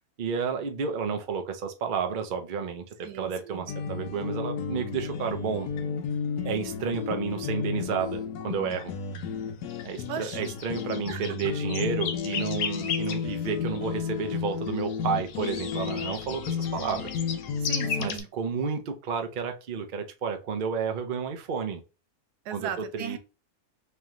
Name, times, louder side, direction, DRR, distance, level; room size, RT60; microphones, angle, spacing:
voice 1, 0.2-5.7 6.4-8.9 9.8-17.1 18.0-21.8 22.5-23.2, right 6 dB, 55° right, 0.5 m, -31 dB
voice 2, 3.0-3.7 10.1-10.4 11.1-11.3 17.6-18.3 22.4-23.2, right 9 dB, 90° right, 1.2 m, -37 dB
sound 1, 3.7-18.2, left 6 dB, 80° left, 1.2 m, -32 dB
3.2 x 2.9 x 3.6 m
omnidirectional pair, 1.6 m